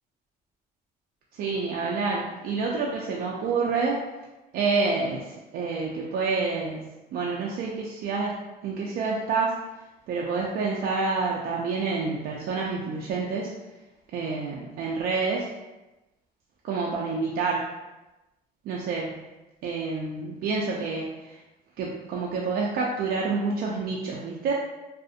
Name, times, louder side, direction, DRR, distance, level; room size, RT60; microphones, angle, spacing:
voice 1, 1.4-4.0 4.5-8.4 8.6-9.5 10.1-13.5 14.1-15.5 16.6-17.7 18.6-19.2 19.6-21.4 21.8-24.5, right 4 dB, 65° right, -3 dB, 0.4 m, -28 dB
2.6 x 2.0 x 2.4 m, 1.0 s
cardioid pair, 110°, 17 cm